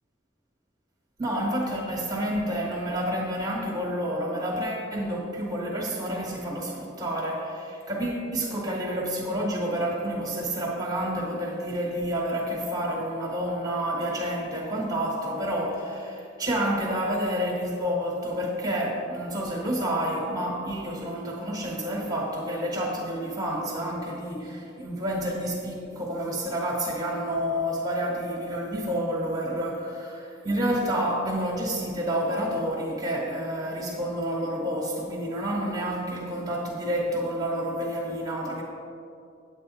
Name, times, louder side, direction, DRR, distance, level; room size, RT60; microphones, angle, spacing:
voice 1, 1.2-38.6, equal, 20° right, -2 dB, 1.3 m, -29 dB
9.0 x 8.4 x 4.1 m, 2.6 s
head